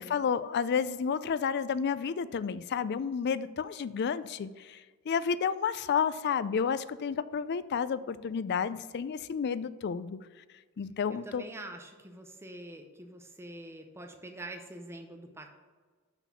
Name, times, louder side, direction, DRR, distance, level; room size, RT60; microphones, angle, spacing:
voice 1, 0.0-4.8 5.1-10.2 10.8-11.4, left 6 dB, 50° left, 15 dB, 0.4 m, -31 dB
voice 2, 11.1-15.5, right 1 dB, 10° right, 4 dB, 0.6 m, -45 dB
5.9 x 5.9 x 5.8 m, 1.4 s
head